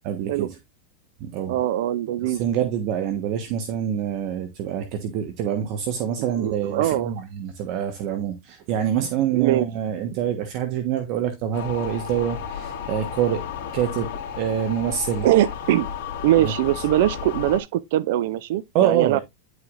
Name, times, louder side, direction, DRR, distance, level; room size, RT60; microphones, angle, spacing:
voice 1, 0.0-0.6 1.2-1.6 2.2-13.4 13.7-14.1 14.4-15.3 16.4-16.5 18.7-19.2, right 9 dB, 45° right, 1.2 m, -26 dB
voice 2, 1.5-2.4 6.2-7.2 9.3-9.7 15.2-15.9 16.2-19.2, right 13 dB, 65° right, 0.4 m, -22 dB
sound 1, 11.5-17.6, left 7 dB, 55° left, 2.2 m, -33 dB
10.5 x 4.8 x 2.5 m
supercardioid pair, 135°, 0 cm